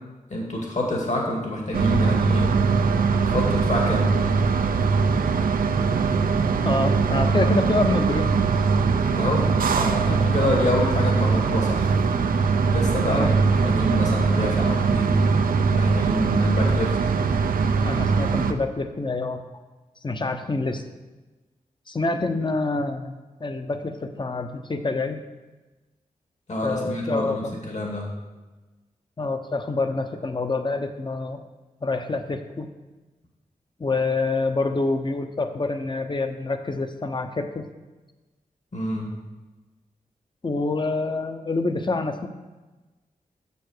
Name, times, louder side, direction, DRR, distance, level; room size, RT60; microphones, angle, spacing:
voice 1, 0.3-2.5 3.2-4.2 9.2-9.5 9.8-11.9 12.7-15.2 15.7-17.0 26.5-28.1 38.7-39.1, left 1 dB, 55° left, -1 dB, 2.4 m, -27 dB
sound 1, 1.7-18.5, right 5 dB, 90° right, 0.6 m, -21 dB
voice 2, 6.6-8.3 13.1-13.3 17.8-19.4 20.0-20.8 21.9-23.1 23.4-25.2 26.6-27.5 29.2-31.4 31.8-32.7 33.8-37.7 40.4-42.3, left 3 dB, 35° left, 7 dB, 0.9 m, -26 dB
7.1 x 6.9 x 6.7 m, 1.2 s
cardioid pair, 65°, 14 cm